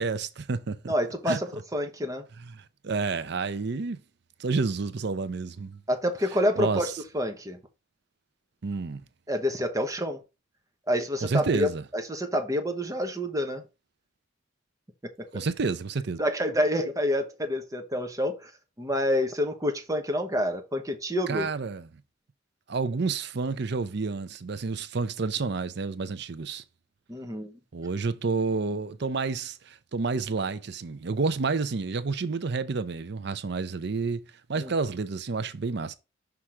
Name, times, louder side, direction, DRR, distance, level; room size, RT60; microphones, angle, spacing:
voice 1, 0.0-0.9 1.3-1.4 2.4-4.0 4.4-5.8 6.6-6.9 8.6-9.0 11.2-11.8 15.3-16.2 21.3-21.9 22.7-26.6 27.7-34.2 34.5-35.9, right 4 dB, 60° right, 0.6 m, -29 dB
voice 2, 0.9-2.2 5.9-7.6 9.3-10.2 10.9-13.6 16.2-18.5 18.8-21.5 27.1-27.5 34.6-34.7, equal, 15° right, 1.1 m, -28 dB
5.9 x 3.6 x 4.8 m
head